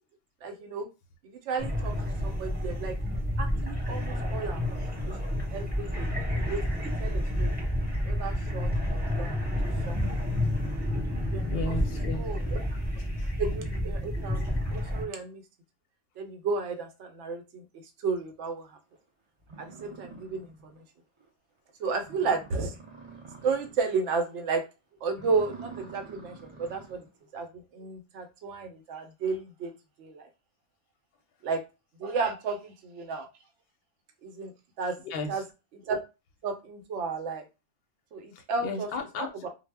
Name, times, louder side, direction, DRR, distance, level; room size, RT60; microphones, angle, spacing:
voice 1, 0.4-0.9 1.2-1.9 2.2-3.0 3.4-4.6 4.9-6.6 7.0-7.6 8.0-9.4 9.8-10.2 11.2-11.6 12.2-12.6 13.4-15.4 16.2-17.6 18.0-18.7 19.6-20.5 21.8-22.7 23.4-24.6 25.0-27.0 27.3-27.5 27.7-29.7 30.0-30.3 31.4-31.6 32.0-33.3 34.2-34.5 34.8-35.0 35.3-35.4 35.8-36.0 36.4-37.4 38.1-38.9 39.2-39.5, right 4 dB, 75° right, 6 dB, 0.9 m, -33 dB
sound 1, 1.6-15.0, left 1 dB, 10° right, 0.9 m, -30 dB
voice 2, 11.5-12.3 13.0-13.3 35.0-35.4 38.3-39.5, left 3 dB, 60° left, 4 dB, 0.7 m, -35 dB
sound 2, 19.0-19.1 19.4-20.8 21.2-21.3 21.7-21.8 22.0-23.9 24.3-24.6 25.1-27.1, right 4 dB, 50° right, 0.3 m, -47 dB
2.0 x 2.0 x 3.3 m, 0.28 s
omnidirectional pair, 1.2 m